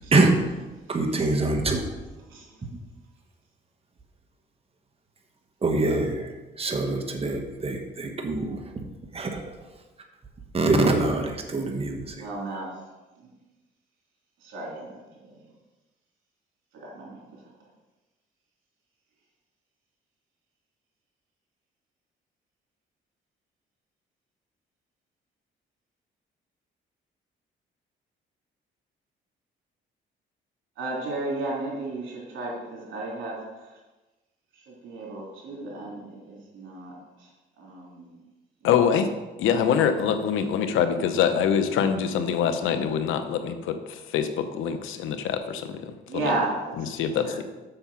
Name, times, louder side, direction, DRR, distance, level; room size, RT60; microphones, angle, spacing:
voice 1, 0.9-1.9 5.6-8.6 9.1-9.4 10.5-12.2, right 2 dB, 30° right, 4 dB, 1.4 m, -24 dB
voice 2, 12.2-12.7 13.2-13.3 14.4-15.3 16.8-17.2 30.8-33.7 34.7-36.9 37.2-37.3 37.6-38.1 38.6-38.7 46.1-47.4, right 2 dB, 80° right, -2 dB, 3.3 m, -34 dB
voice 3, 38.6-39.1 39.4-46.3 46.8-47.4, left 7 dB, 90° left, 9 dB, 0.9 m, -25 dB
7.0 x 6.8 x 5.7 m, 1.1 s
cardioid pair, 90°, 20 cm